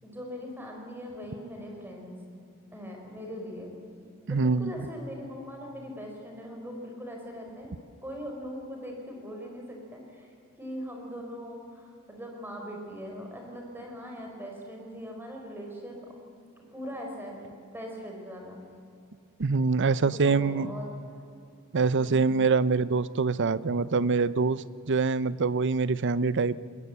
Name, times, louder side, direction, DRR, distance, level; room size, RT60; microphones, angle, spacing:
voice 1, 0.0-2.2 2.7-3.7 4.2-7.7 8.0-10.3 10.6-16.1 16.7-18.6 19.8-20.9 22.0-22.4, equal, 10° right, 1 dB, 4.7 m, -41 dB
voice 2, 4.3-4.7 19.4-20.7 21.7-26.6, right 4 dB, 55° right, 17 dB, 0.6 m, -25 dB
21.0 x 20.5 x 8.3 m, 2.5 s
head